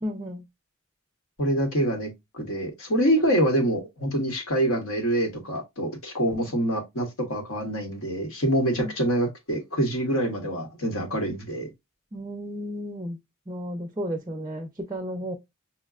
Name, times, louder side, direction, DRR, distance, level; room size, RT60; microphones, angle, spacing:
voice 1, 0.0-0.4 6.5-6.6 8.8-9.1 12.1-13.2 13.5-15.3, equal, 15° right, 0.4 m, -33 dB
voice 2, 1.4-11.7, right 1 dB, 75° left, 1.1 m, -26 dB
5.8 x 2.1 x 2.4 m
head